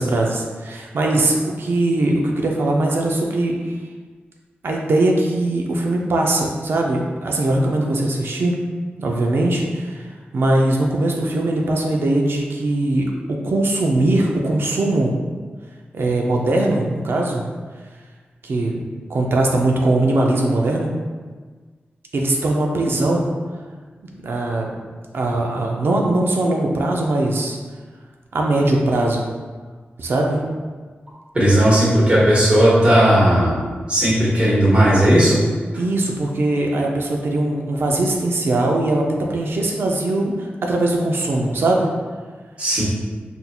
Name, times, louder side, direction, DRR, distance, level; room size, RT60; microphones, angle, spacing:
voice 1, 0.0-3.7 4.6-8.6 9.0-10.0 10.3-13.1 13.4-15.1 15.9-17.4 18.4-18.8 19.1-20.9 22.1-23.3 24.0-24.7 25.1-27.6 28.3-29.3 30.0-30.4 35.7-41.9, right 2 dB, 70° right, 0 dB, 0.5 m, -20 dB
voice 2, 31.3-33.6 33.9-35.4 42.6-42.8, right 1 dB, 30° right, -8 dB, 1.3 m, -15 dB
4.2 x 2.6 x 2.3 m, 1.5 s
wide cardioid pair, 90°, 4 cm